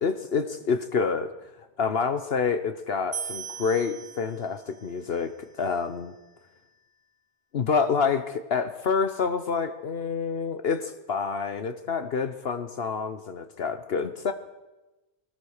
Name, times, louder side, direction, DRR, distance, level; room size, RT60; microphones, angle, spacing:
voice 1, 0.0-1.3 1.8-5.3 5.6-6.1 7.5-14.3, left 5 dB, 65° left, 9 dB, 1.1 m, -27 dB
sound 1, 3.1-6.4, right 7 dB, 55° right, 2.2 m, -40 dB
21.5 x 18.5 x 6.5 m, 1.1 s
omnidirectional pair, 1.1 m